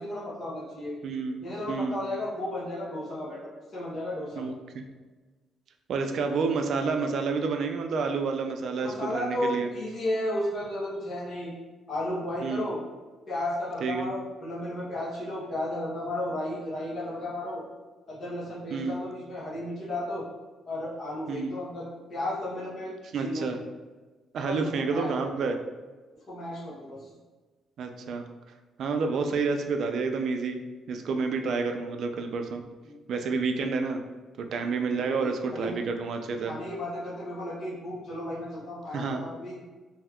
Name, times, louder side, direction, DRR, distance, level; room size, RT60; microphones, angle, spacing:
voice 1, 0.0-1.0 1.4-4.4 8.8-11.5 11.9-12.8 13.3-17.6 18.1-20.2 20.7-23.5 24.4-25.1 25.4-25.5 26.3-27.1 32.8-32.9 34.9-35.8 36.4-39.6, left 1 dB, 40° left, -8 dB, 0.8 m, -34 dB
voice 2, 1.0-2.0 4.4-4.8 5.9-9.7 12.4-12.7 13.8-14.1 18.7-19.0 21.3-21.5 23.1-23.6 24.3-25.6 27.8-28.3 28.8-30.6 30.9-32.6 33.1-34.0 34.4-36.5 38.9-39.2, right 4 dB, 55° right, 5 dB, 0.3 m, -29 dB
2.7 x 2.3 x 3.4 m, 1.3 s
cardioid pair, 150°, 0 cm